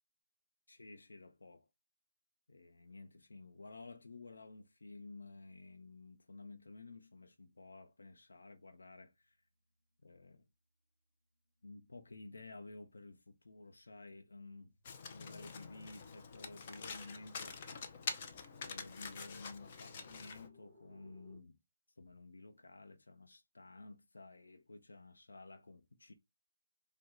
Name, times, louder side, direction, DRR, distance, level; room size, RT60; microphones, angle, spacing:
voice 1, 0.7-1.7 2.5-9.4 10.0-10.5 11.6-14.7 15.1-17.8 18.6-21.6 22.0-26.1, left 3 dB, 90° left, 0.7 m, -53 dB
sound 1, 13.2-21.4, equal, 10° left, 2.1 m, -68 dB
Domestic sounds home sounds, 14.8-20.5, left 5 dB, 30° left, 0.6 m, -46 dB
5.0 x 2.2 x 3.7 m
hypercardioid pair, 170°, 0 cm